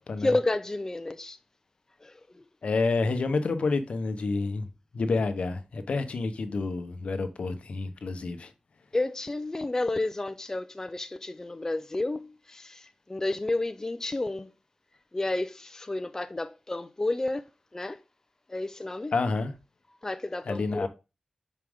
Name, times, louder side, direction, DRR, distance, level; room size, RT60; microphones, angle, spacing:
voice 1, 0.2-1.4 2.0-2.4 8.9-14.5 15.1-17.5 17.7-18.0 18.5-19.1 20.0-20.9, left 2 dB, 25° left, 0.4 m, -31 dB
voice 2, 2.6-4.7 4.9-8.5 19.1-19.5 20.5-20.9, left 3 dB, 75° left, 0.8 m, -29 dB
6.2 x 4.5 x 3.6 m
wide cardioid pair, 75°, 2 cm